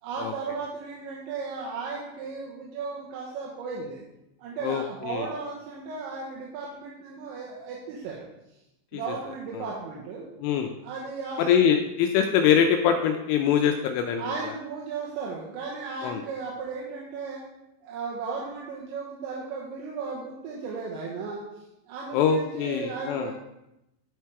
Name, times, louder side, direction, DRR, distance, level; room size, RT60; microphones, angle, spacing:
voice 1, 0.0-4.0 4.4-8.3 8.9-10.3 10.8-11.5 14.2-17.4 17.8-23.3, right 4 dB, 75° right, -3 dB, 3.1 m, -35 dB
voice 2, 4.6-5.3 8.9-9.0 9.5-9.6 10.4-10.7 11.4-14.5 16.0-16.2 22.1-23.3, left 8 dB, 85° left, 5 dB, 2.9 m, -24 dB
10.5 x 4.6 x 4.6 m, 0.89 s
omnidirectional pair, 6.0 m